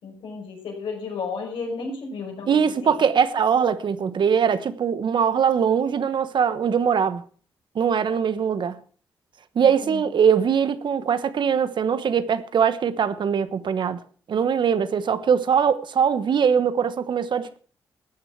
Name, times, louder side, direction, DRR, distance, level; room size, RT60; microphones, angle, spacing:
voice 1, 0.0-3.0 9.6-10.0, left 4 dB, 80° left, 5.3 m, -33 dB
voice 2, 2.5-7.2 7.7-8.8 9.5-14.0 14.3-17.6, right 7 dB, 65° right, 1.2 m, -21 dB
14.5 x 9.1 x 5.9 m
supercardioid pair, 55°, 9 cm